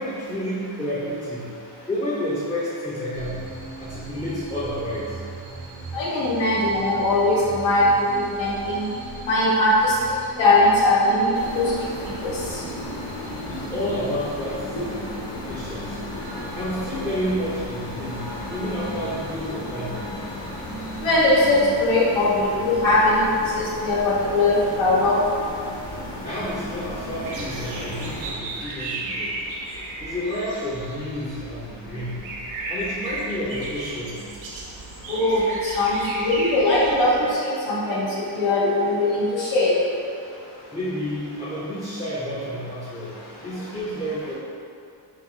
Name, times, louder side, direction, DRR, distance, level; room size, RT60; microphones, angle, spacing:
voice 1, 0.0-1.6 1.9-3.5 3.8-5.2 13.5-15.1 15.5-16.0 16.5-20.2 26.2-29.4 30.0-32.3 32.7-34.3 40.7-43.2 43.4-44.4, equal, 15° left, -10 dB, 0.6 m, -30 dB
sound 1, 3.1-21.6, right 3 dB, 40° right, 0.6 m, -40 dB
voice 2, 5.9-8.9 9.2-10.0 10.4-11.9 12.2-12.6 21.0-23.3 23.5-25.2 35.1-38.1 38.3-39.7, left 2 dB, 75° left, -6 dB, 1.2 m, -20 dB
sound 2, 11.3-28.3, left 1 dB, 60° left, 1.0 m, -35 dB
sound 3, 27.2-37.3, right 2 dB, 85° right, 0.8 m, -34 dB
4.0 x 2.3 x 4.4 m, 2.4 s
cardioid pair, 135°, 45 cm